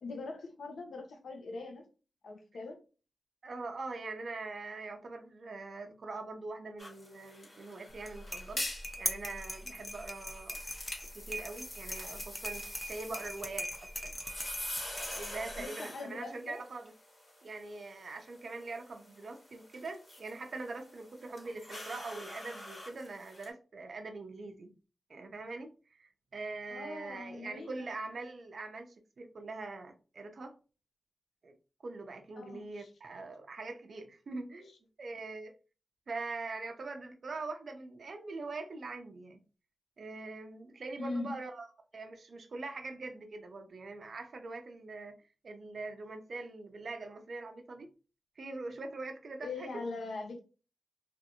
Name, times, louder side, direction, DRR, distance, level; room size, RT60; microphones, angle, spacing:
voice 1, 0.0-1.8 2.2-2.8 15.6-16.6 26.7-27.9 32.4-32.9 41.0-41.3 49.4-50.4, left 3 dB, 85° left, 0.6 m, -41 dB
voice 2, 3.4-10.6 11.1-13.7 14.0-14.1 15.1-16.9 17.4-24.7 25.1-30.6 31.4-31.5 31.8-34.7 35.0-35.5 36.1-39.4 40.0-45.2 45.4-47.9 48.4-49.8, right 3 dB, 65° right, 0.4 m, -43 dB
sound 1, 6.8-23.5, left 1 dB, 45° left, 1.2 m, -46 dB
sound 2, 7.9-15.6, equal, 10° left, 0.5 m, -41 dB
2.5 x 2.4 x 2.7 m
cardioid pair, 75°, 0 cm